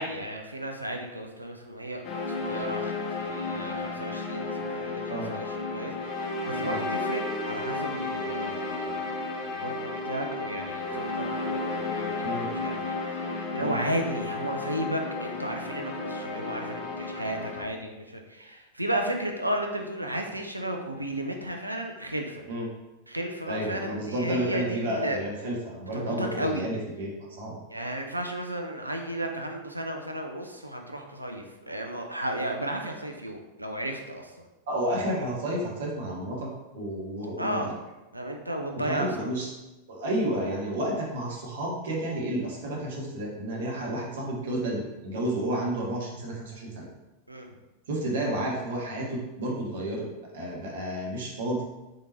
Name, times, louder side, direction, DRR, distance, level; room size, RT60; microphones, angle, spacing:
voice 1, 0.0-12.9 13.2-22.4 23.1-25.2 25.9-26.7 27.7-34.3 37.4-37.7 38.1-39.3 47.3-47.5, right 1 dB, 85° right, 3 dB, 0.5 m, -34 dB
sound 1, 2.0-17.6, left 3 dB, 35° left, 0.8 m, -33 dB
voice 2, 23.5-27.6 34.7-37.7 38.8-39.5 39.9-46.9 47.9-50.1 50.3-51.6, right 1 dB, 60° right, -2 dB, 1.1 m, -31 dB
3.8 x 3.6 x 2.8 m, 1.1 s
figure-of-eight pair, 90°, 0 cm